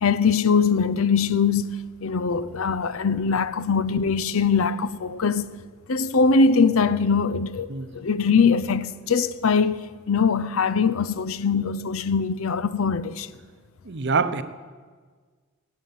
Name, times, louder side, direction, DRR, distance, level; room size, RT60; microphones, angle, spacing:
voice 1, 0.0-1.7 2.0-5.5 5.9-13.3, left 5 dB, 75° left, 0.6 m, -22 dB
voice 2, 13.9-14.4, right 4 dB, 55° right, 0.7 m, -24 dB
13.5 x 9.2 x 9.4 m
head